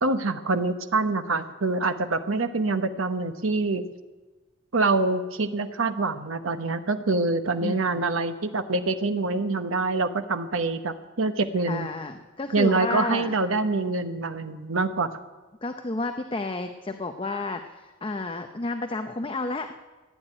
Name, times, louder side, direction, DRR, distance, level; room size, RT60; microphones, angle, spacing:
voice 1, 0.0-3.8 4.7-11.9 12.5-15.1, right 3 dB, 80° right, 8 dB, 1.0 m, -25 dB
voice 2, 7.6-8.1 11.7-13.4 15.6-19.7, left 2 dB, 25° left, 6 dB, 0.7 m, -31 dB
15.5 x 9.5 x 9.0 m, 1.2 s
head